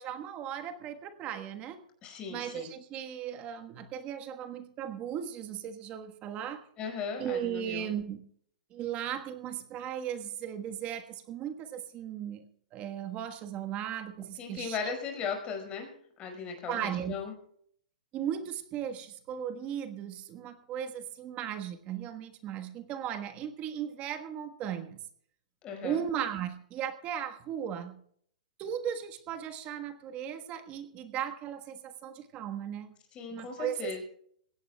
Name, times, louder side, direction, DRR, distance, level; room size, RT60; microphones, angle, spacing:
voice 1, 0.0-1.8 2.3-6.6 7.2-8.2 8.7-12.4 12.7-14.9 16.7-17.1 18.1-25.0 25.8-28.0 28.6-32.9 33.3-33.9, right 9 dB, 30° right, 8 dB, 1.4 m, -37 dB
voice 2, 2.0-2.7 6.8-7.9 14.4-15.9 16.2-17.3 25.6-26.0 33.1-34.0, left 6 dB, 25° left, 3 dB, 5.4 m, -37 dB
22.0 x 17.0 x 2.3 m, 0.62 s
hypercardioid pair, 140°, 4 cm